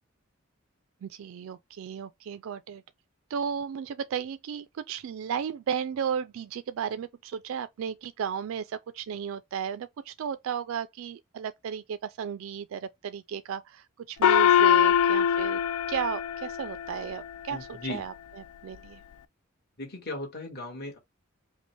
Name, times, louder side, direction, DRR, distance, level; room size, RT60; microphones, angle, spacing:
voice 1, 1.0-2.8 3.3-15.6 15.9-19.0, right 7 dB, 75° right, 0.3 m, -34 dB
Gong, 14.2-17.1, left 9 dB, 90° left, 0.3 m, -22 dB
voice 2, 17.5-18.0 19.8-21.0, left 2 dB, 50° left, 1.4 m, -37 dB
5.1 x 2.1 x 3.1 m
head